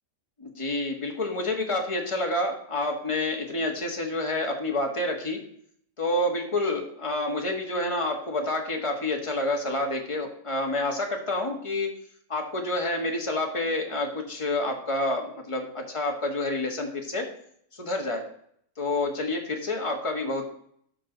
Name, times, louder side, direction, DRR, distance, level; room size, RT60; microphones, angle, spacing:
voice 1, 0.4-5.4 6.0-11.9 12.3-17.3 17.7-18.2 18.8-20.4, left 2 dB, 25° left, 1 dB, 1.6 m, -28 dB
13.0 x 5.9 x 3.9 m, 0.67 s
omnidirectional pair, 1.4 m